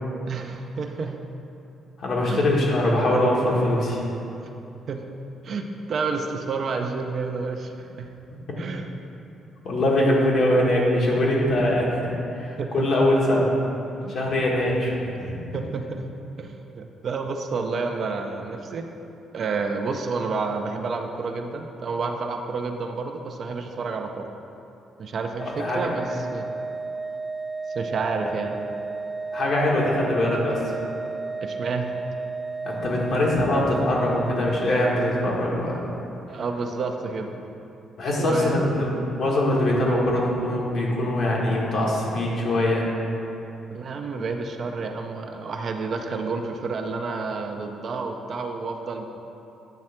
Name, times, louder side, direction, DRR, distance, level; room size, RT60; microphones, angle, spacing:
voice 1, 0.3-1.2 2.2-2.5 4.9-5.1 5.4-8.1 8.6-8.8 12.6-12.9 14.0-14.2 15.5-16.0 16.4-18.9 19.3-24.3 25.0-26.5 27.7-28.5 31.4-32.0 36.3-37.3 38.2-38.6 43.7-49.0, right 4 dB, 55° right, 4 dB, 0.6 m, -30 dB
voice 2, 2.0-4.0 9.6-13.5 14.1-15.4 25.6-25.8 29.3-30.6 32.6-35.7 38.0-38.9 39.2-42.9, left 1 dB, 60° left, -3 dB, 1.6 m, -22 dB
Organ, 25.4-36.1, right 3 dB, ahead, 0.3 m, -33 dB
8.9 x 3.2 x 5.8 m, 2.8 s
cardioid pair, 90°, 0 cm